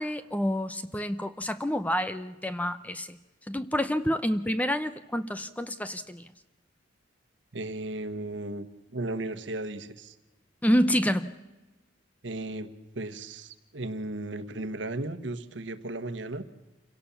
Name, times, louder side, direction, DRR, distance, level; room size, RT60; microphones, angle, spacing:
voice 1, 0.0-3.2 3.5-6.2 10.6-11.3, equal, 10° left, 12 dB, 0.7 m, -28 dB
voice 2, 7.5-10.1 12.2-12.7 12.9-16.5, right 2 dB, 70° right, 11 dB, 1.4 m, -35 dB
27.5 x 17.5 x 7.1 m, 1.1 s
head